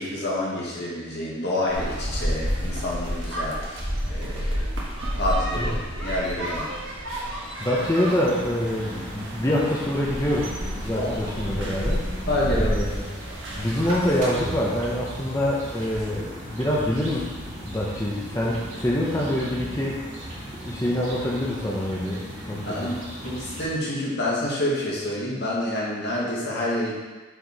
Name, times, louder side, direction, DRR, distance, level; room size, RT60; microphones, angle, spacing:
voice 1, 0.0-3.8 4.1-4.6 5.2-6.7 10.9-11.1 12.3-12.8 22.5-26.9, left 1 dB, 60° left, -5 dB, 1.9 m, -28 dB
sound 1, 1.7-14.2, equal, 85° right, 1.5 m, -30 dB
voice 2, 7.6-10.6 10.8-12.0 12.6-13.1 13.6-17.3 17.6-20.0 20.7-22.9, left 1 dB, 15° left, -5 dB, 0.8 m, -25 dB
sound 2, 7.7-23.7, equal, 40° right, 1.9 m, -37 dB
6.6 x 4.7 x 4.7 m, 1.3 s
head